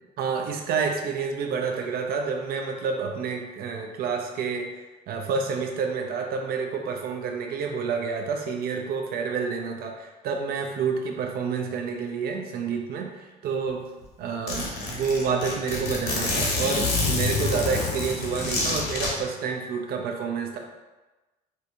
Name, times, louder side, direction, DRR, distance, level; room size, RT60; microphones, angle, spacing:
voice 1, 0.0-13.9 14.2-20.6, right 5 dB, 65° right, 2 dB, 0.6 m, -29 dB
Zipper (clothing), 13.7-13.8 14.0-14.1 14.5-19.1, left 3 dB, 85° left, 1.0 m, -27 dB
4.5 x 2.8 x 2.6 m, 1.1 s
cardioid pair, 110°, 17 cm